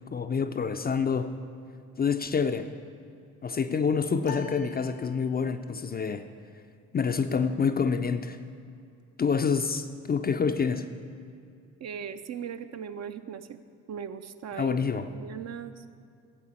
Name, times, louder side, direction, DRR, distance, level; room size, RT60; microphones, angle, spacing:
voice 1, 0.1-1.3 2.0-2.7 3.4-6.3 6.9-8.4 9.2-10.9 14.6-15.1, left 5 dB, 25° left, 8 dB, 0.5 m, -27 dB
sound 1, 4.2-5.7, left 8 dB, 85° left, 0.6 m, -44 dB
voice 2, 11.8-13.6 13.9-15.8, right 7 dB, 40° right, 9 dB, 0.6 m, -39 dB
13.0 x 8.5 x 4.4 m, 2.4 s
figure-of-eight pair, 40°, 40 cm